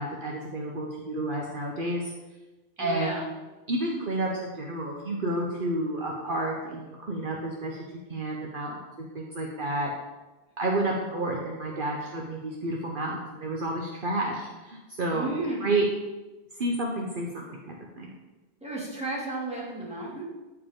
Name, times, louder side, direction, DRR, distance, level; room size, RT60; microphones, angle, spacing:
voice 1, 0.0-2.1 2.8-3.1 3.7-7.8 8.1-9.9 10.6-15.3 15.6-15.9 16.6-18.1, right 1 dB, 55° right, -1 dB, 1.1 m, -30 dB
voice 2, 2.8-3.3 15.1-15.8 18.6-20.2, right 2 dB, 5° right, -6 dB, 2.4 m, -33 dB
13.5 x 4.8 x 3.7 m, 1.1 s
omnidirectional pair, 1.1 m